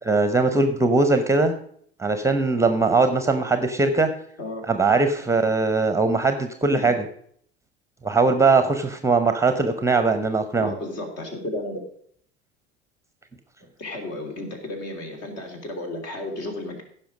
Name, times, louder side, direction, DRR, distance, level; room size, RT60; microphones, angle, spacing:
voice 1, 0.0-1.5 2.0-4.1 4.7-7.0 8.0-10.7, right 3 dB, 10° right, 8 dB, 0.9 m, -20 dB
voice 2, 10.6-11.8 13.8-16.8, left 1 dB, 50° left, 3 dB, 3.0 m, -33 dB
15.5 x 5.7 x 5.1 m, 0.63 s
figure-of-eight pair, 70°, 32 cm